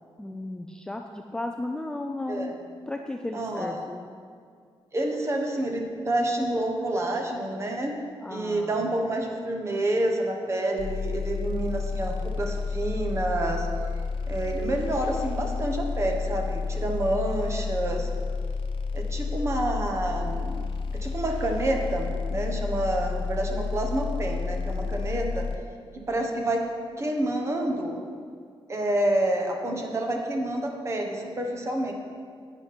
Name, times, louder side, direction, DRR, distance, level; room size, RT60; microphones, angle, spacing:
voice 1, 0.2-2.5 2.9-4.0 8.2-8.9, left 2 dB, 5° left, 3 dB, 0.4 m, -34 dB
voice 2, 3.3-3.9 4.9-8.0 8.3-13.7 14.3-18.1 18.9-20.7 20.9-25.5 26.1-26.6 27.0-28.0 28.7-31.9, right 1 dB, 30° right, 2 dB, 1.3 m, -28 dB
sound 1, 10.8-25.5, left 4 dB, 60° left, 0.7 m, -30 dB
11.0 x 9.4 x 4.3 m, 2.2 s
wide cardioid pair, 155°, 10 cm